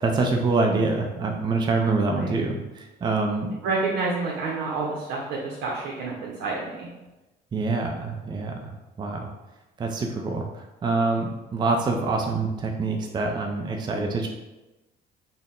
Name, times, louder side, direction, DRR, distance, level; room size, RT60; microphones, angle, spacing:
voice 1, 0.0-3.5 7.5-8.5 9.0-9.3 9.8-10.4 10.8-14.3, right 3 dB, 25° right, 2 dB, 0.4 m, -25 dB
voice 2, 2.0-2.3 3.6-6.9, right 3 dB, 90° right, -3 dB, 0.7 m, -29 dB
4.1 x 2.1 x 3.6 m, 1.0 s
cardioid pair, 110°, 17 cm